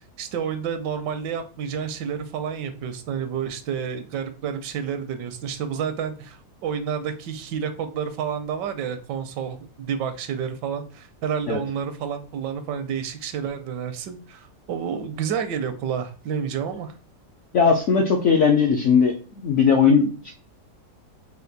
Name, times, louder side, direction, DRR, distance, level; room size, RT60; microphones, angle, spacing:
voice 1, 0.2-16.9, right 7 dB, 80° right, 9 dB, 1.2 m, -30 dB
voice 2, 17.5-19.1 19.4-20.3, left 6 dB, 70° left, 2 dB, 0.7 m, -18 dB
4.3 x 2.3 x 3.9 m, 0.39 s
omnidirectional pair, 1.9 m